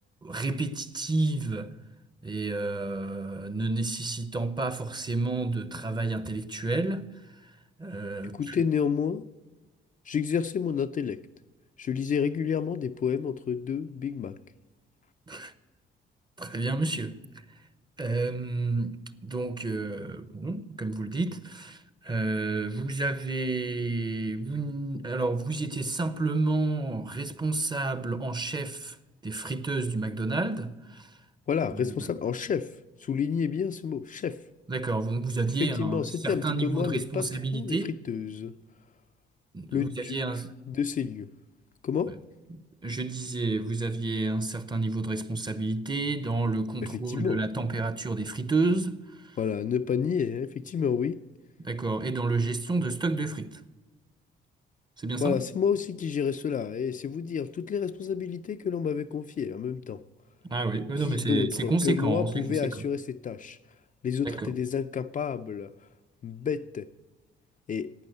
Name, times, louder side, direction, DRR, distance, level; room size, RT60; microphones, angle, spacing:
voice 1, 0.2-1.7 2.2-7.1 7.8-8.6 15.3-15.5 16.4-17.2 18.0-29.0 29.2-31.1 31.7-31.9 34.7-38.0 39.5-40.5 42.5-49.0 49.2-49.4 51.6-53.6 55.0-55.4 60.5-62.7 64.2-64.5, right 3 dB, 20° right, 0.8 m, -30 dB
voice 2, 8.2-9.3 10.1-11.2 11.8-14.4 31.5-34.4 35.6-38.5 39.7-40.2 40.7-41.3 41.8-42.2 46.8-47.4 49.4-51.2 55.2-60.0 61.0-63.6 64.0-65.7 66.2-66.9 67.7-67.9, left 7 dB, 40° left, 0.5 m, -30 dB
12.0 x 8.8 x 7.9 m
cardioid pair, 90°, 20 cm